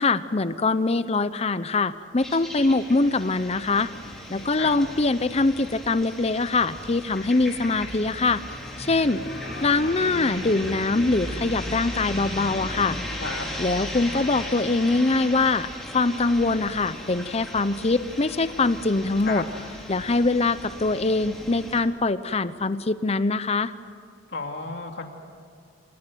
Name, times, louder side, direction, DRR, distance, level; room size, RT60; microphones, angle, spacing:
voice 1, 0.0-3.9 4.3-8.4 8.8-9.2 9.6-13.0 13.6-19.4 19.9-23.7, left 3 dB, 35° left, 14 dB, 0.7 m, -23 dB
sound 1, 2.2-21.8, left 1 dB, ahead, 4.3 m, -37 dB
voice 2, 4.3-4.8 12.8-13.5 19.0-19.4 24.3-25.0, left 3 dB, 65° left, 3 dB, 2.7 m, -34 dB
sound 2, 8.5-17.3, left 1 dB, 85° left, 5.3 m, -44 dB
29.5 x 19.5 x 9.3 m, 2.2 s
head